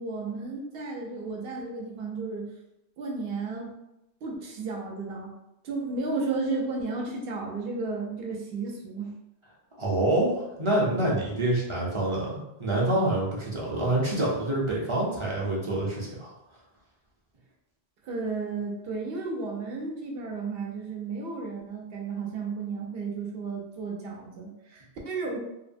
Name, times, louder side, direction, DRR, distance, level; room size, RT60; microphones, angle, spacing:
voice 1, 0.0-2.4 3.0-3.7 4.2-5.3 5.6-9.1 18.0-25.4, right 3 dB, 65° right, -1 dB, 0.8 m, -33 dB
voice 2, 9.8-16.3, right 1 dB, 35° right, -5 dB, 0.5 m, -26 dB
2.9 x 2.0 x 2.5 m, 0.89 s
omnidirectional pair, 1.1 m